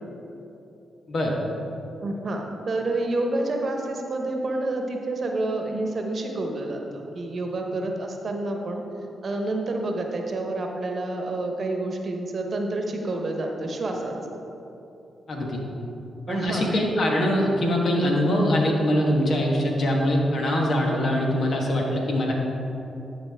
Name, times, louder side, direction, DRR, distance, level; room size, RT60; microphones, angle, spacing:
voice 1, 2.0-8.8 9.2-14.2 16.3-16.7, right 2 dB, 55° right, 3 dB, 1.0 m, -28 dB
voice 2, 15.3-15.6 16.3-22.3, equal, 60° left, -1 dB, 1.4 m, -23 dB
11.0 x 5.1 x 3.5 m, 3.0 s
hypercardioid pair, 40°, 0 cm